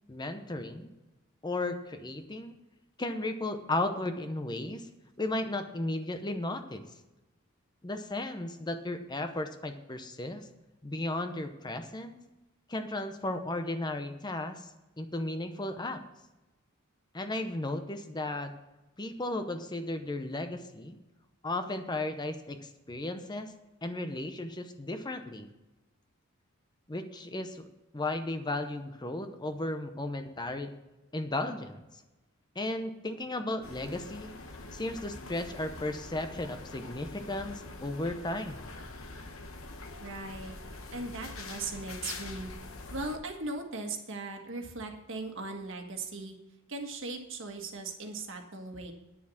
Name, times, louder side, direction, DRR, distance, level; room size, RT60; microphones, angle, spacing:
voice 1, 0.1-0.9 1.4-2.5 3.0-4.9 5.2-6.8 7.8-10.5 10.8-12.2 12.7-16.0 17.1-18.5 19.0-21.0 21.4-23.5 23.8-25.5 26.9-27.6 27.9-30.7 31.1-31.8 32.5-34.3 34.7-38.8, left 2 dB, 20° left, 7 dB, 0.7 m, -35 dB
sound 1, 33.6-43.2, left 3 dB, 75° left, 1.1 m, -44 dB
voice 2, 40.0-40.6 40.9-42.5 42.9-46.3 46.7-48.9, right 3 dB, 60° right, 4 dB, 1.6 m, -38 dB
9.7 x 6.9 x 7.1 m, 1.0 s
head